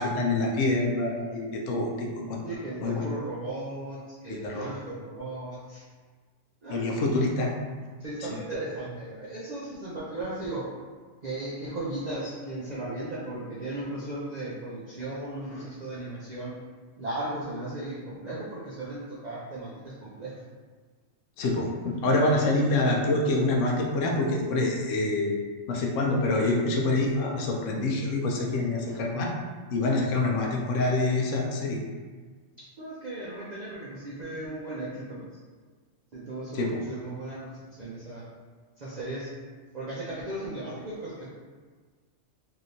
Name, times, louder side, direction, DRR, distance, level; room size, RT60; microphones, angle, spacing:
voice 1, 0.0-2.4 2.8-3.0 4.3-4.7 6.7-7.5 21.4-25.4 25.7-29.3 29.7-31.8 36.5-36.7, left 2 dB, 80° left, 0 dB, 0.9 m, -26 dB
voice 2, 2.4-5.8 6.6-7.1 8.0-10.7 11.2-16.5 17.0-20.3 28.9-29.0 32.8-35.3 36.1-38.2 38.8-39.3 39.7-41.2, right 2 dB, 50° right, -9 dB, 0.5 m, -36 dB
3.3 x 2.8 x 2.6 m, 1.4 s
omnidirectional pair, 1.3 m